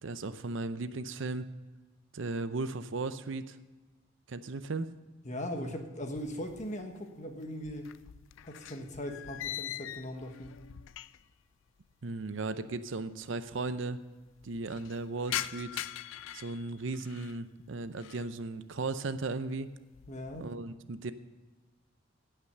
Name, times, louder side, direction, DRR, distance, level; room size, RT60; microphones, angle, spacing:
voice 1, 0.0-1.5 2.1-3.6 4.3-4.9 12.0-14.0 14.4-15.7 16.3-19.7 20.4-21.1, right 3 dB, 65° right, 12 dB, 0.6 m, -36 dB
voice 2, 5.2-7.9 8.4-10.6 20.1-20.5, equal, 35° left, 4 dB, 1.3 m, -39 dB
sound 1, 6.1-7.0 7.3-11.4 11.7-11.8 12.6-12.7 12.9-13.0 13.3-13.8 14.2-17.4 17.8-18.3 18.8-19.2 19.6-20.5, left 12 dB, 70° left, 0.3 m, -42 dB
16.0 x 5.9 x 6.7 m, 1.2 s
head